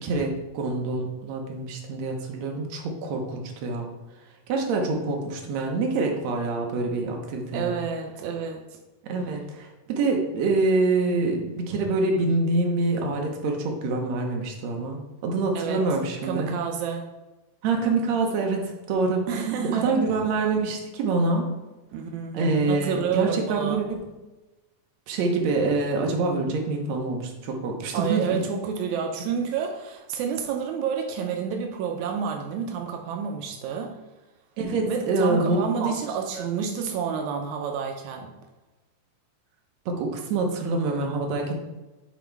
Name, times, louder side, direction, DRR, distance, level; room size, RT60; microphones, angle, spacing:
voice 1, 0.0-3.9 4.5-7.7 9.1-16.5 17.6-19.3 19.7-21.5 22.3-24.0 25.1-28.4 34.6-35.9 36.3-36.5 39.8-41.5, right 3 dB, 65° right, 1 dB, 1.8 m, -26 dB
voice 2, 7.5-8.6 15.5-15.8 16.2-17.0 19.3-20.1 21.9-23.8 27.9-34.0 34.9-38.3, right 7 dB, 85° right, 3 dB, 1.6 m, -29 dB
7.3 x 3.8 x 4.5 m, 1.1 s
omnidirectional pair, 4.1 m